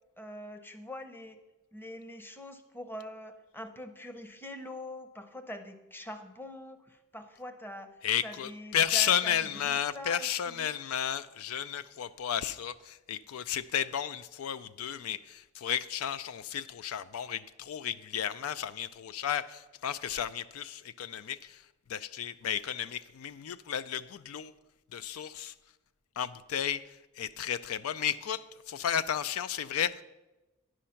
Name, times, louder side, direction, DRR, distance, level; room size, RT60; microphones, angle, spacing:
voice 1, 0.2-1.4 1.7-7.9 8.2-10.7, left 1 dB, 10° left, 8 dB, 0.7 m, -44 dB
voice 2, 8.0-21.6 21.9-24.5 24.9-25.5 26.2-30.0, left 9 dB, 85° left, 15 dB, 0.4 m, -33 dB
9.8 x 6.3 x 5.7 m, 1.1 s
head